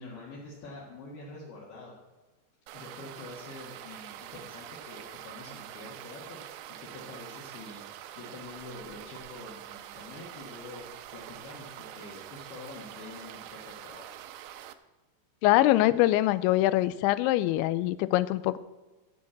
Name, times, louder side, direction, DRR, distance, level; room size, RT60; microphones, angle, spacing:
voice 1, 0.0-2.0 2.7-7.8 8.2-14.1, left 2 dB, 65° left, -5 dB, 3.6 m, -46 dB
sound 1, 2.7-14.7, right 12 dB, 90° right, 2.3 m, -45 dB
voice 2, 15.4-18.6, left 16 dB, 90° left, 15 dB, 2.9 m, -23 dB
12.0 x 6.4 x 8.3 m, 1.2 s
omnidirectional pair, 5.2 m